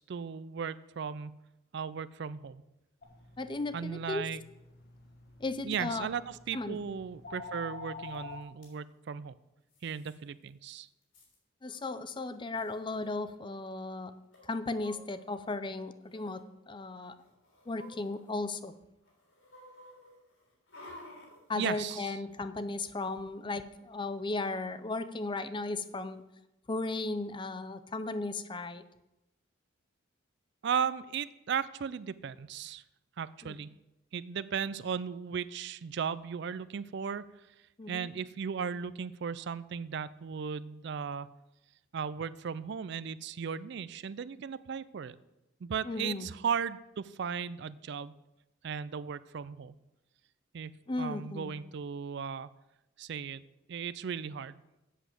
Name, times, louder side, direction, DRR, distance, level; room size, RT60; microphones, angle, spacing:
voice 1, 0.0-1.4 1.7-2.6 3.7-4.4 5.6-9.4 9.8-10.9 21.6-22.2 30.6-32.8 33.2-33.7 34.1-37.3 37.9-41.3 41.9-45.2 45.6-48.1 48.6-49.7 50.5-50.7 51.0-52.5 53.0-53.4 53.7-54.6, right 7 dB, 55° right, 17 dB, 0.4 m, -36 dB
sound 1, 3.0-8.4, left 4 dB, 50° left, 1.4 m, -48 dB
voice 2, 3.4-4.2 5.4-6.1 6.5-6.8 11.6-14.1 14.5-16.4 16.7-17.2 17.7-18.7 21.5-26.2 26.7-28.8 33.4-33.5 37.8-38.1 45.8-46.3 50.9-51.5, left 3 dB, 25° left, 12 dB, 0.5 m, -35 dB
sound 2, 8.1-8.2 8.4-8.7 9.7-10.2 10.5-10.6 10.8-11.4 12.2-12.3 12.5-12.7 14.3-15.5 16.0-16.4 17.0-18.7 19.1-22.0 22.3-22.4, left 1 dB, 70° left, 3.5 m, -53 dB
8.3 x 7.0 x 7.5 m, 0.93 s
head